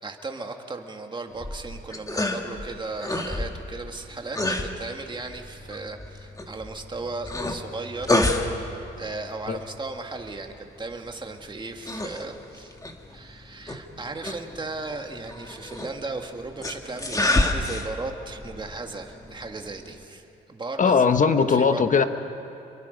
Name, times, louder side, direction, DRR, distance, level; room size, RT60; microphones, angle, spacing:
voice 1, 0.0-8.2 8.5-12.8 13.1-20.9 21.5-21.9, right 3 dB, 25° right, 4 dB, 2.0 m, -36 dB
sound 1, 1.3-20.0, left 2 dB, 15° left, 2.0 m, -31 dB
voice 2, 20.8-22.0, left 5 dB, 40° left, 9 dB, 1.2 m, -19 dB
28.5 x 23.0 x 5.2 m, 3.0 s
cardioid pair, 90°, 20 cm